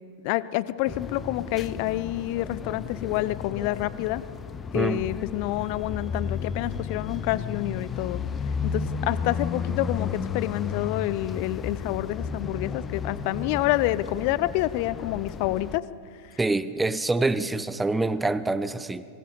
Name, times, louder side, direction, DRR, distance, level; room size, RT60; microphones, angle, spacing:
voice 1, 0.2-4.2 4.7-8.2 8.6-15.8 16.2-16.4, left 16 dB, 45° left, 18 dB, 0.7 m, -28 dB
sound 1, 0.9-15.8, left 6 dB, 20° left, 0.9 m, -33 dB
voice 2, 16.4-19.1, right 2 dB, 10° right, 15 dB, 0.8 m, -26 dB
24.5 x 21.0 x 7.0 m, 2.5 s
figure-of-eight pair, 90°, 0 cm